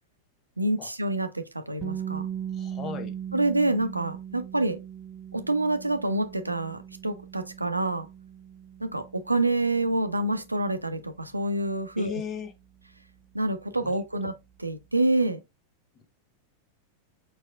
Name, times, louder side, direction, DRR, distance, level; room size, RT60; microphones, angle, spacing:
voice 1, 0.6-2.3 3.3-4.8 5.3-8.1 8.8-12.2 13.3-14.3 14.6-15.4, right 2 dB, 85° right, 0.5 m, -27 dB
sound 1, 1.8-13.7, right 9 dB, 25° right, 0.3 m, -40 dB
voice 2, 2.5-3.1 12.0-12.5 13.8-13.9, left 7 dB, 30° left, 0.9 m, -36 dB
4.7 x 4.5 x 2.3 m
figure-of-eight pair, 90°, 0 cm